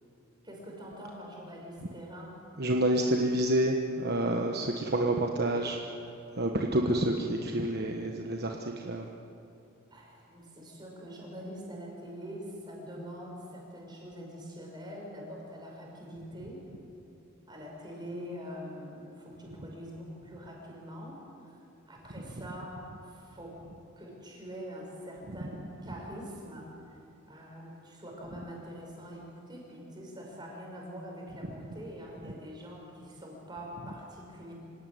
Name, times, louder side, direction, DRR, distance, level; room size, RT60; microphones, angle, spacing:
voice 1, 0.4-2.4 3.0-3.1 9.9-16.6 17.5-21.6 21.9-23.6 24.0-26.8 27.3-34.5, equal, 20° right, -1 dB, 6.0 m, -44 dB
voice 2, 2.6-5.8 6.3-9.1 22.1-22.5 25.3-25.5 25.8-25.9 32.2-32.3, right 1 dB, 45° right, 2 dB, 1.3 m, -29 dB
26.5 x 17.0 x 9.5 m, 2.8 s
head